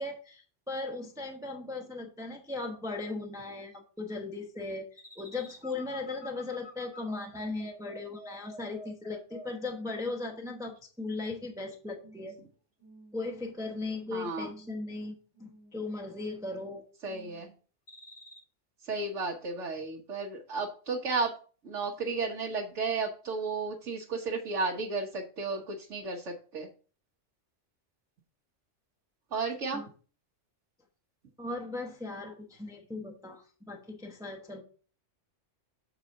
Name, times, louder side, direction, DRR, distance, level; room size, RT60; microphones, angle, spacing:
voice 1, 0.0-12.4 13.1-16.8 29.7-29.9 31.4-34.6, left 3 dB, 5° right, 2 dB, 0.8 m, -38 dB
sound 1, 5.0-9.9 10.3-10.7 11.1-11.6 12.0-12.4 12.8-13.3 13.7-14.2 14.5-15.0 15.3-15.8 16.2-16.7 17.0-17.5 17.9-18.4, equal, 80° left, 3.3 m, -50 dB
voice 2, 14.1-14.5 17.0-17.5 18.9-21.3 21.6-26.7 29.3-29.8, right 4 dB, 80° right, 0 dB, 1.4 m, -33 dB
7.3 x 4.0 x 6.2 m, 0.39 s
omnidirectional pair, 1.2 m